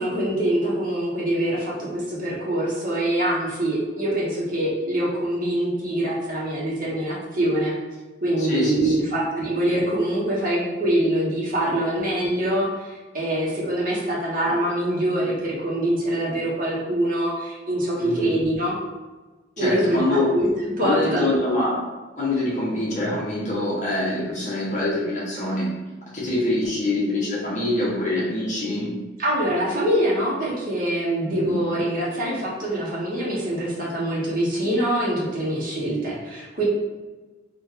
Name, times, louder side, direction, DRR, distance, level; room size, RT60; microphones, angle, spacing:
voice 1, 0.0-7.7 8.2-18.8 19.6-21.3 29.2-36.6, right 1 dB, 45° right, -5 dB, 1.2 m, -24 dB
voice 2, 8.4-8.9 18.0-18.3 19.6-20.3 20.8-21.7 22.2-25.7 26.1-28.9 31.2-31.6, left 1 dB, 40° left, -7 dB, 1.4 m, -25 dB
3.7 x 2.6 x 4.5 m, 1.2 s
head